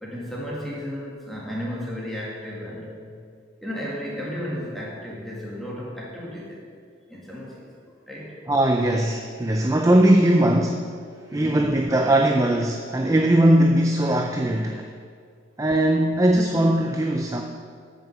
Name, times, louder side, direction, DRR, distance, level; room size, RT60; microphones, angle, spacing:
voice 1, 0.0-3.1 3.6-6.7 7.1-7.7 8.1-8.3 11.3-11.7, equal, ahead, -5 dB, 2.0 m, -34 dB
voice 2, 8.5-10.9 11.3-14.9 15.6-17.4, right 1 dB, 15° right, 2 dB, 0.4 m, -20 dB
8.8 x 6.4 x 7.2 m, 2.2 s
head